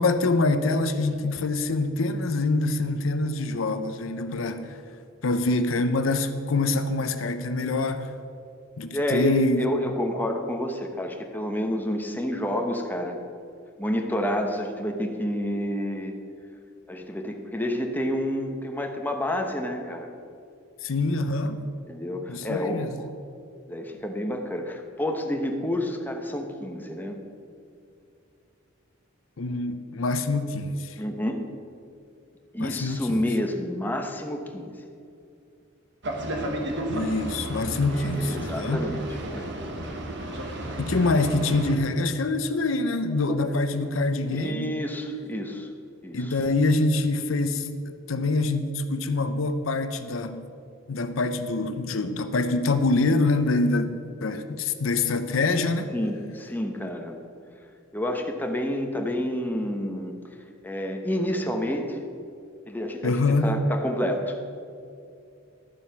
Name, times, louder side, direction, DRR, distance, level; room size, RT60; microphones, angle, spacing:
voice 1, 0.0-4.8 5.2-8.1 8.8-9.6 20.8-21.6 22.3-23.0 29.4-31.0 32.6-33.2 36.9-38.9 40.8-44.7 46.1-47.7 48.1-50.5 50.9-55.9 63.0-63.5, left 2 dB, 80° left, 9 dB, 0.6 m, -25 dB
voice 2, 8.9-13.2 13.8-16.1 16.9-20.1 21.9-23.1 23.7-27.2 31.0-31.5 32.5-34.7 37.9-39.0 39.3-39.5 43.3-43.5 44.3-45.7 46.0-46.4 55.9-57.2 57.9-60.1 60.6-62.0 62.7-64.4, equal, 10° left, 3 dB, 0.9 m, -29 dB
Boat Water vehicle, 36.0-41.7, right 1 dB, 60° right, 1.4 m, -32 dB
12.0 x 7.3 x 5.9 m, 2.5 s
head